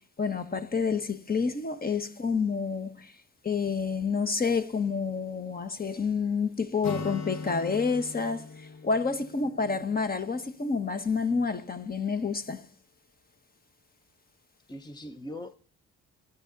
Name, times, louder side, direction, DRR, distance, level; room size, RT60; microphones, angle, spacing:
voice 1, 0.2-3.1 3.4-12.6, left 5 dB, 30° left, 1.3 m, -29 dB
Acoustic guitar, 6.8-10.6, left 4 dB, 65° left, 1.8 m, -40 dB
voice 2, 9.4-9.8 14.7-15.6, left 1 dB, 15° left, 0.9 m, -42 dB
13.0 x 9.3 x 4.0 m
cardioid pair, 90°, 30 cm